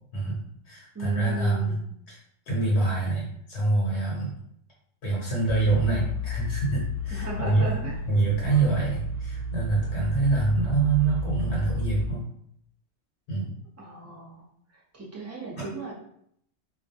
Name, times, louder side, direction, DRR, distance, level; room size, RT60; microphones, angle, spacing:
voice 1, 0.1-1.8 2.1-2.2 2.5-4.3 5.0-7.7 8.1-12.3 13.3-13.5, right 3 dB, 80° left, -4 dB, 1.0 m, -25 dB
voice 2, 0.9-1.8 7.1-8.0 13.8-14.4 14.7-15.9, right 3 dB, 25° right, -4 dB, 0.3 m, -36 dB
sound 1, 5.5-12.1, left 2 dB, 60° right, 0.8 m, -32 dB
2.3 x 2.2 x 2.6 m, 0.70 s
omnidirectional pair, 1.1 m